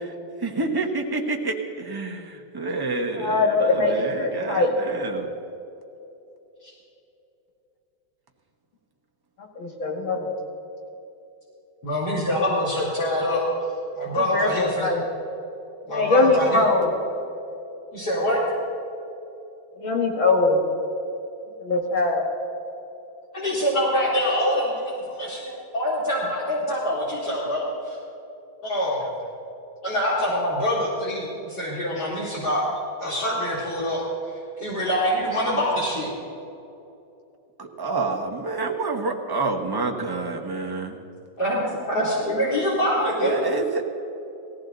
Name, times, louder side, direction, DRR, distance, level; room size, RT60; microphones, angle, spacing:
voice 1, 0.4-5.3 37.6-41.0 43.2-44.0, right 3 dB, 20° right, 1 dB, 0.7 m, -28 dB
voice 2, 2.9-4.7 9.6-10.3 14.1-15.0 15.9-16.9 19.8-20.6 21.6-22.2, left 3 dB, 80° left, 0 dB, 2.9 m, -22 dB
voice 3, 11.8-13.4 14.0-14.9 15.9-16.6 17.9-18.4 23.3-28.0 28.6-29.0 29.8-32.6 33.0-34.0 34.6-36.1 41.4-43.5, equal, 55° left, -8 dB, 3.8 m, -25 dB
19.5 x 15.5 x 4.0 m, 2.9 s
omnidirectional pair, 2.1 m